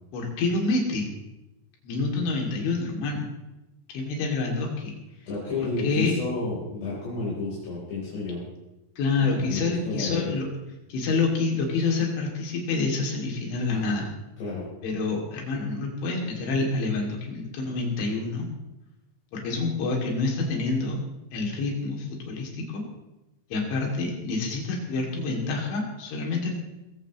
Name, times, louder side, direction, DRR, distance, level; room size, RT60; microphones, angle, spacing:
voice 1, 0.1-1.1 1.8-3.3 3.9-4.9 5.8-6.1 9.0-10.5 10.9-14.1 14.8-18.5 19.3-21.0 21.3-22.8 23.5-26.5, left 3 dB, 85° left, -1 dB, 5.1 m, -27 dB
voice 2, 5.3-8.4 9.2-10.4 13.7-14.0 14.4-14.7, left 3 dB, 65° left, -7 dB, 6.1 m, -31 dB
21.0 x 16.0 x 3.1 m, 0.99 s
omnidirectional pair, 5.3 m